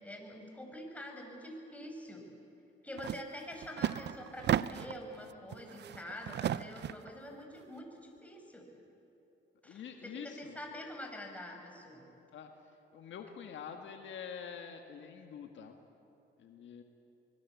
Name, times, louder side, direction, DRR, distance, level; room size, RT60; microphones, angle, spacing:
voice 1, 0.0-2.3 2.8-8.6 9.6-12.1, left 1 dB, 5° left, 2 dB, 5.5 m, -46 dB
sound 1, 3.0-3.2 3.5-5.0 5.5-7.1, right 10 dB, 60° right, 0.6 m, -34 dB
voice 2, 9.6-10.6 12.3-12.5 12.9-15.8 16.4-16.8, left 7 dB, 70° left, 5 dB, 1.8 m, -46 dB
24.5 x 21.5 x 8.5 m, 3.0 s
cardioid pair, 90°, 20 cm